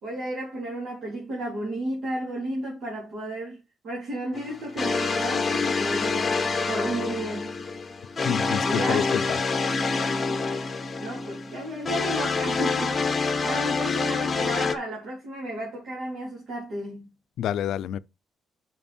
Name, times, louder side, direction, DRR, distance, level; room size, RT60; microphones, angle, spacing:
voice 1, 0.0-7.6 8.7-9.2 10.3-10.4 11.0-17.1, right 1 dB, 55° right, 3.3 m, -33 dB
sound 1, 4.3-14.8, left 4 dB, 20° left, 1.0 m, -27 dB
voice 2, 8.2-9.4 17.4-18.0, left 10 dB, 75° left, 0.4 m, -28 dB
7.0 x 6.1 x 4.3 m
cardioid pair, 165°, 0 cm